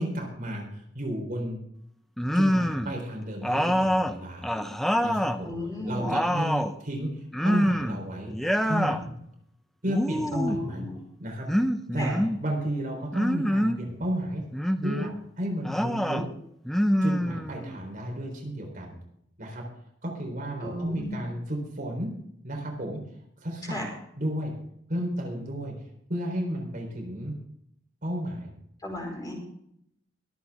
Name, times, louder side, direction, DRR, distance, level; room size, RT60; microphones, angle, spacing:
voice 1, 0.0-1.6 2.3-4.5 5.0-5.5 5.9-7.1 7.4-8.3 8.6-9.1 9.8-10.8 11.2-11.5 11.9-14.4 14.8-15.1 15.4-16.3 17.0-18.9 19.4-19.6 20.0-22.1 22.4-23.0 23.4-23.8 24.2-24.5 24.9-25.7 26.1-27.3 28.0-28.5, equal, 45° right, 0 dB, 3.8 m, -32 dB
sound 1, 2.2-3.0 3.4-5.4 5.8-6.8 7.3-8.0 8.3-9.0 9.9-10.6 11.5-12.4 13.1-13.8 14.5-15.1 15.6-16.3 16.6-17.8, equal, ahead, 0.6 m, -26 dB
voice 2, 5.4-6.1 10.3-11.0 12.0-12.1 20.6-21.2 23.7-23.8 28.8-29.3, left 1 dB, 20° left, 0 dB, 4.7 m, -34 dB
22.5 x 8.2 x 3.6 m, 0.73 s
head